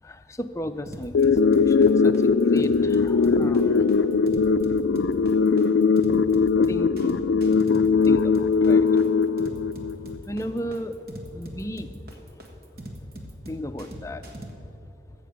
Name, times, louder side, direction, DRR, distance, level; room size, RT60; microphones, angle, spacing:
voice 1, 0.0-3.9 6.7-7.3 8.0-8.9 10.3-11.0 11.3-12.0 13.5-14.2 14.6-14.7, equal, 15° left, 8 dB, 0.5 m, -34 dB
sound 1, 0.9-14.5, equal, 55° right, 1.5 m, -41 dB
sound 2, 1.2-10.2, left 5 dB, 85° left, 0.4 m, -20 dB
14.5 x 7.7 x 6.6 m, 2.9 s
head